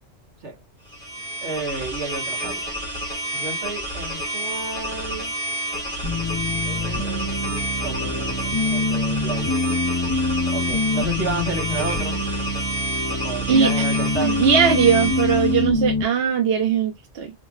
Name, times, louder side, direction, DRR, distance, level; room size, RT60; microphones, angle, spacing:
sound 1, 0.9-15.7, right 1 dB, 30° right, 1.5 m, -29 dB
voice 1, 1.4-2.6 3.3-5.3 6.6-7.4 7.8-9.6 10.5-12.2 13.2-14.4, right 3 dB, 85° right, 1.7 m, -31 dB
sound 2, 6.0-16.0, left 3 dB, 25° left, 0.4 m, -25 dB
voice 2, 14.2-17.3, right 7 dB, 60° right, 1.0 m, -19 dB
5.0 x 2.2 x 2.3 m
omnidirectional pair, 1.2 m